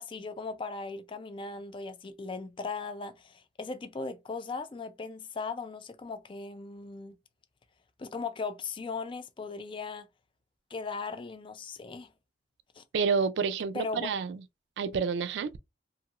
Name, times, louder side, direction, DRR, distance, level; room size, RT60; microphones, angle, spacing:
voice 1, 0.0-7.2 8.0-10.1 10.7-12.1 12.8-12.9 13.7-14.1, left 4 dB, 30° left, 0.4 m, -38 dB
voice 2, 12.9-14.4 14.8-15.6, right 5 dB, 80° right, 0.3 m, -29 dB
2.6 x 2.4 x 2.9 m
head